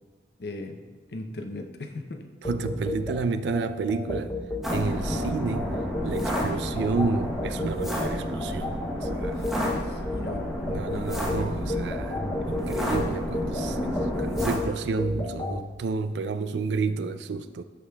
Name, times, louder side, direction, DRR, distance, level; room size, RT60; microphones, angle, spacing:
voice 1, 0.4-0.8 1.1-2.2 4.9-5.3 9.4-10.5 10.9-11.6, left 2 dB, 65° left, 5 dB, 0.6 m, -38 dB
sound 1, 2.4-15.6, left 2 dB, 20° left, 0.6 m, -33 dB
voice 2, 2.4-4.4 4.7-5.7 6.0-8.8 9.0-9.4 10.6-13.9 14.2-17.6, right 4 dB, 75° right, 11 dB, 0.3 m, -30 dB
sound 2, 4.6-14.6, equal, ahead, 0.9 m, -31 dB
12.5 x 4.9 x 2.3 m, 1.4 s
head